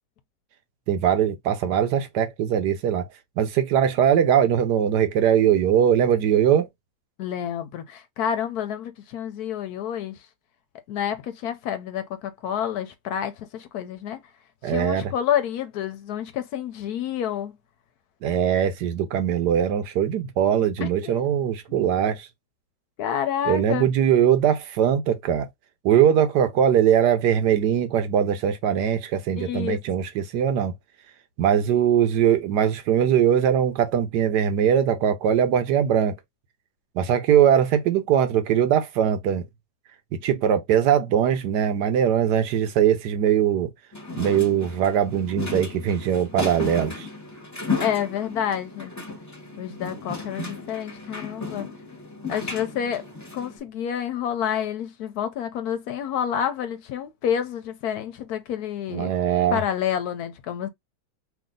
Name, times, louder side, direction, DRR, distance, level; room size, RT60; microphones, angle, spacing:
voice 1, 0.9-3.1 3.4-6.7 14.6-15.1 18.2-22.3 23.5-25.5 25.8-30.7 31.4-36.2 36.9-39.4 40.2-43.7 44.1-47.1 58.9-59.6, right 9 dB, 80° right, 1.3 m, -21 dB
voice 2, 7.2-10.2 10.9-14.2 14.6-17.5 20.8-21.2 21.7-21.9 23.0-23.9 29.4-29.8 47.8-48.9 49.6-51.7 52.3-53.1 53.3-59.1 59.5-60.7, left 9 dB, 70° left, 1.0 m, -29 dB
sound 1, 43.9-53.6, left 4 dB, 15° left, 0.9 m, -34 dB
3.2 x 2.6 x 3.7 m
omnidirectional pair, 1.8 m